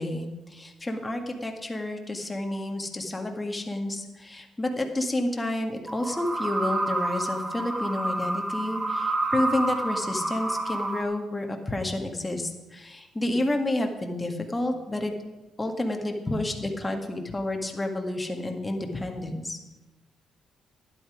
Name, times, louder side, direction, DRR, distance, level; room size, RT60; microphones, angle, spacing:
voice 1, 0.0-15.1 15.6-19.6, left 1 dB, 15° left, 3 dB, 1.9 m, -30 dB
sound 1, 5.9-11.0, right 2 dB, 15° right, 1.4 m, -29 dB
12.0 x 11.0 x 5.0 m, 1.1 s
cardioid pair, 90°, 0 cm